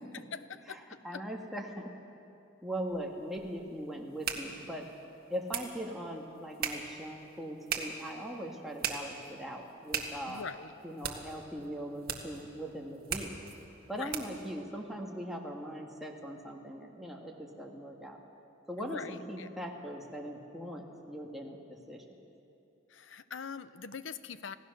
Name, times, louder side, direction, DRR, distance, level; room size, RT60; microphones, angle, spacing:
voice 1, 0.1-1.2 10.3-10.7 13.9-14.1 18.8-19.5 22.9-24.6, left 5 dB, 70° left, 13 dB, 0.7 m, -43 dB
voice 2, 0.7-1.9 2.6-4.9 5.3-10.5 10.8-13.3 13.9-18.2 18.7-22.1, equal, ahead, -1 dB, 1.8 m, -40 dB
sound 1, 2.9-14.5, right 6 dB, 45° right, 1.8 m, -41 dB
27.0 x 17.0 x 6.7 m, 2.8 s
head